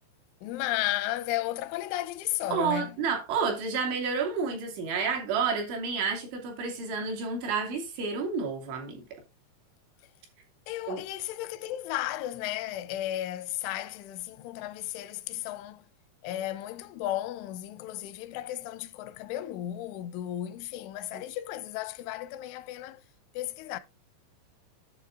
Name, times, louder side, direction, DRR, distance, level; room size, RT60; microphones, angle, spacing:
voice 1, 0.4-3.0 10.7-15.8 16.2-23.0 23.3-23.8, left 14 dB, 85° left, 3.2 m, -34 dB
voice 2, 2.5-9.0 10.9-11.0 21.1-21.2, right 5 dB, 75° right, 5.0 m, -30 dB
10.5 x 7.1 x 3.7 m
omnidirectional pair, 5.4 m